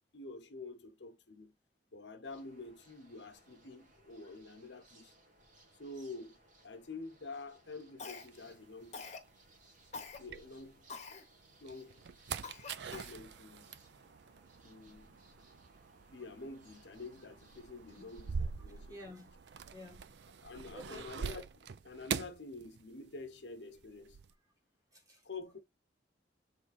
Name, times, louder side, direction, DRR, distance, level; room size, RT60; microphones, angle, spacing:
voice 1, 0.1-1.5 1.9-5.1 5.8-6.4 6.6-9.0 10.2-10.9 11.6-12.0 12.9-13.7 14.6-15.2 16.1-19.0 20.4-24.2 25.2-25.6, left 3 dB, 80° left, 1.0 m, -48 dB
sound 1, 2.2-18.3, right 1 dB, 50° right, 2.1 m, -65 dB
Cough, 8.0-8.5 8.9-9.3 9.9-10.2 10.9-11.2 11.8-11.9 12.4-13.2, left 4 dB, 40° left, 1.0 m, -46 dB
sound 2, 8.3-11.0 11.5-23.3 23.5-24.3, right 6 dB, 70° right, 0.5 m, -44 dB
voice 2, 18.9-19.4 19.7-20.4 20.7-21.1 24.9-25.3, left 1 dB, 20° right, 1.9 m, -51 dB
7.0 x 3.5 x 4.1 m
head